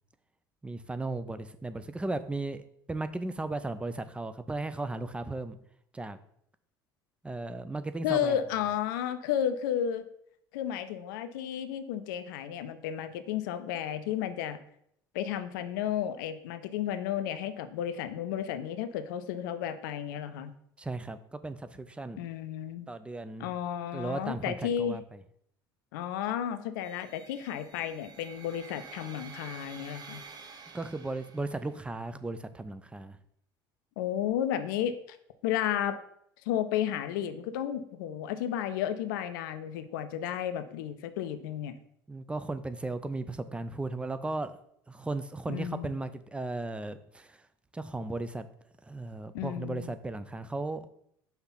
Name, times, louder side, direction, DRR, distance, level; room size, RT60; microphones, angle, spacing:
voice 1, 0.6-2.6 2.9-5.6 5.9-6.2 7.2-8.4 20.8-22.2 22.9-23.5 23.9-25.2 30.7-33.2 42.1-44.6 44.9-47.5 47.7-48.4 48.8-50.9, right 2 dB, 10° right, 11 dB, 0.5 m, -36 dB
voice 2, 8.0-10.1 10.5-14.6 15.1-20.5 22.2-22.9 23.4-25.0 25.9-30.2 34.0-34.9 35.4-36.0 36.5-41.8 45.5-45.9 49.3-49.9, left 10 dB, 65° left, 10 dB, 0.5 m, -32 dB
sound 1, 26.8-31.9, right 5 dB, 35° right, 1.1 m, -49 dB
5.7 x 3.4 x 5.7 m, 0.70 s
figure-of-eight pair, 65°, 12 cm